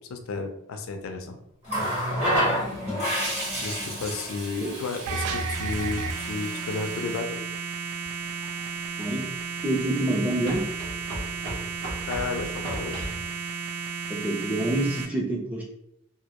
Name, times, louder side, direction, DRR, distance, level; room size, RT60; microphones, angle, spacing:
voice 1, 0.0-1.4 1.6-2.0 2.9-3.1 3.6-7.4 12.1-13.0, left 4 dB, 70° left, 5 dB, 0.3 m, -33 dB
Water tap faucet, 1.6-7.2 8.4-8.6, equal, 30° right, 0.9 m, -30 dB
sound 1, 5.1-15.1, right 5 dB, 90° right, 0.3 m, -33 dB
sound 2, 8.0-8.1 10.4-13.3, equal, 65° right, 0.8 m, -36 dB
voice 2, 9.6-10.6 14.1-15.6, right 1 dB, 5° right, -2 dB, 0.4 m, -27 dB
2.1 x 2.1 x 2.8 m, 0.77 s
head